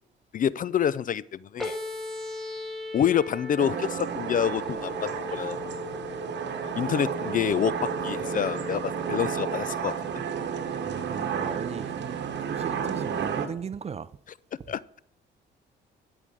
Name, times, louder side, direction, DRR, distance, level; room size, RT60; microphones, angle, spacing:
voice 1, 0.3-1.8 2.9-5.6 6.8-10.2 14.7-14.8, left 9 dB, 45° left, 0.4 m, -27 dB
sound 1, 1.6-9.6, left 2 dB, ahead, 2.0 m, -38 dB
sound 2, 3.6-13.5, right 7 dB, 60° right, 1.3 m, -32 dB
sound 3, 5.3-12.4, left 5 dB, 75° left, 2.5 m, -58 dB
voice 2, 10.8-14.1, right 6 dB, 30° right, 0.5 m, -37 dB
12.0 x 5.0 x 7.5 m
cardioid pair, 90°, 20 cm